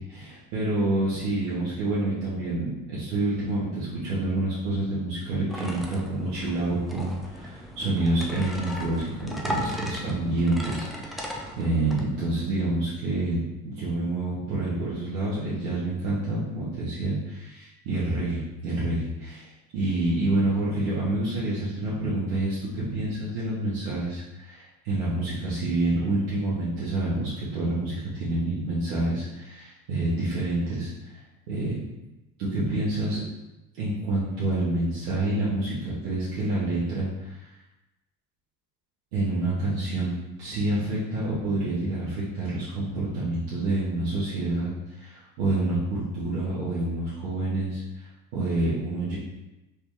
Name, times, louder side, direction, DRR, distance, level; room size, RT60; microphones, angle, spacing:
voice 1, 0.1-19.5 19.7-31.2 31.5-31.8 32.4-33.2 33.8-37.5 39.1-44.7 45.0-49.2, right 2 dB, 80° right, -9 dB, 1.2 m, -28 dB
sound 1, 5.5-12.0, equal, ahead, 0.4 m, -37 dB
3.3 x 2.8 x 3.6 m, 0.97 s
hypercardioid pair, 70°, 42 cm